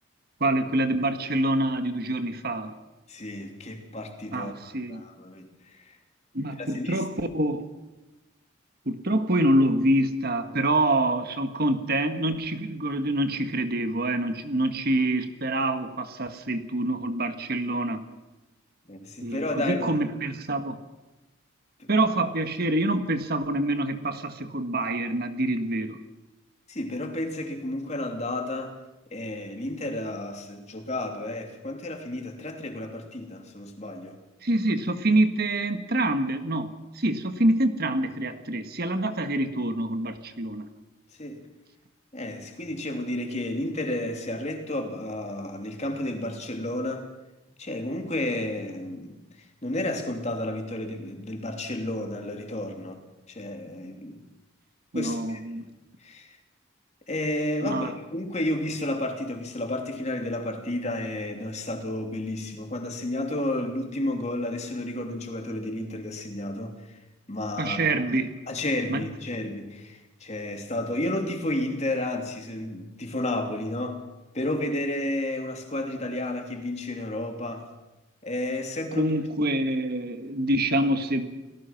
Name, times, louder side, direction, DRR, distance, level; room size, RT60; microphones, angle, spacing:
voice 1, 0.4-2.8 4.3-5.0 6.3-7.7 8.8-18.0 19.2-20.8 21.9-26.0 34.4-40.7 54.9-55.6 57.6-57.9 67.6-68.4 68.9-69.1 79.0-81.3, right 1 dB, 50° right, 8 dB, 1.5 m, -26 dB
voice 2, 3.1-4.5 4.9-6.0 6.6-7.1 18.9-20.0 21.8-21.9 26.7-28.8 29.1-34.2 41.2-41.4 42.1-47.1 47.6-54.2 54.9-55.7 56.0-56.4 57.1-67.0 67.3-67.8 68.5-74.0 74.3-77.7 78.2-79.1, left 1 dB, 35° left, 4 dB, 2.9 m, -32 dB
29.5 x 19.0 x 5.9 m, 1.1 s
head